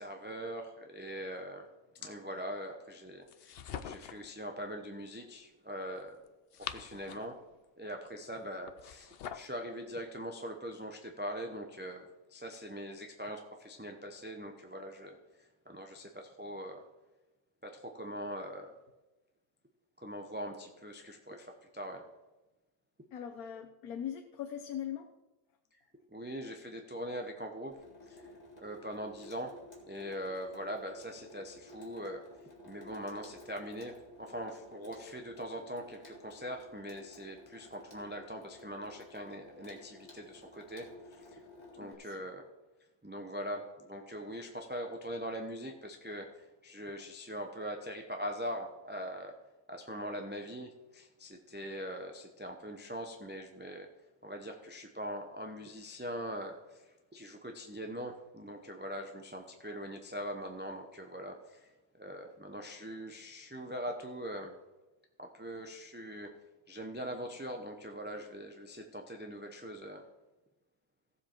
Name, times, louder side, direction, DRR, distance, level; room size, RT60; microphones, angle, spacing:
voice 1, 0.0-1.7 1.9-6.2 6.6-7.4 7.8-15.2 15.7-16.8 17.6-18.7 20.0-22.1 26.1-27.8 28.0-28.3 28.6-29.5 29.9-32.2 32.6-41.4 41.7-42.5 43.0-49.4 49.7-53.9 54.2-61.7 62.0-64.6 65.2-66.3 66.7-70.1, equal, 10° right, 3 dB, 0.7 m, -42 dB
sound 1, 3.3-4.3 6.3-7.4 8.7-9.6, left 8 dB, 60° left, 0.6 m, -44 dB
voice 2, 23.1-25.1 41.8-42.3, left 9 dB, 80° left, 3 dB, 1.3 m, -41 dB
Water tap faucet / Sink (filling or washing), 27.7-41.9, left 2 dB, 25° left, 2.3 m, -54 dB
15.5 x 7.4 x 4.5 m, 1.1 s
omnidirectional pair, 1.5 m